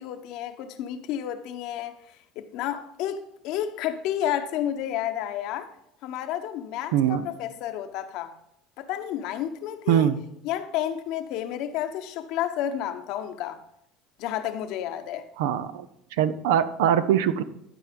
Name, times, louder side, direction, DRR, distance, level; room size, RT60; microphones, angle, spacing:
voice 1, 0.0-2.0 2.4-5.7 6.0-8.3 8.8-10.1 10.4-13.6 14.2-15.3, left 11 dB, 70° left, 0.9 m, -31 dB
voice 2, 6.9-7.3 9.9-10.2 15.4-15.9 16.2-17.4, right 9 dB, 85° right, 0.6 m, -22 dB
12.0 x 4.7 x 5.2 m
supercardioid pair, 100°, 0 cm